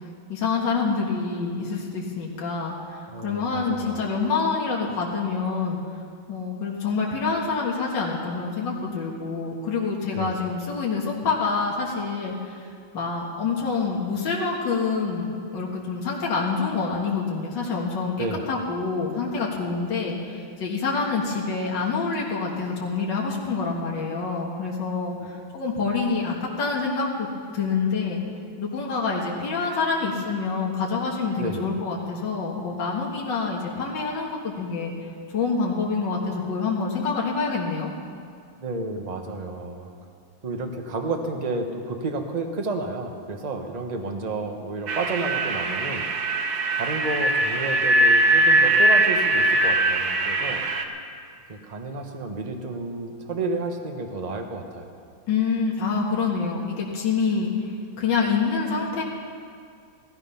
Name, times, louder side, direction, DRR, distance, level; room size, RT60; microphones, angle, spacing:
voice 1, 0.3-5.8 6.3-12.7 12.9-18.2 18.5-27.3 27.5-28.2 28.6-34.9 35.3-37.9 55.3-57.5 58.0-59.0, left 4 dB, 65° left, -3 dB, 2.3 m, -26 dB
voice 2, 3.1-4.1 10.1-10.4 18.2-18.4 25.2-25.3 31.4-31.6 38.6-39.9 40.4-46.1 46.8-50.7 51.5-54.9, right 3 dB, 25° right, 4 dB, 1.0 m, -31 dB
sound 1, 44.9-50.8, right 1 dB, 60° right, 1.4 m, -21 dB
16.5 x 14.0 x 5.6 m, 2.3 s
omnidirectional pair, 2.2 m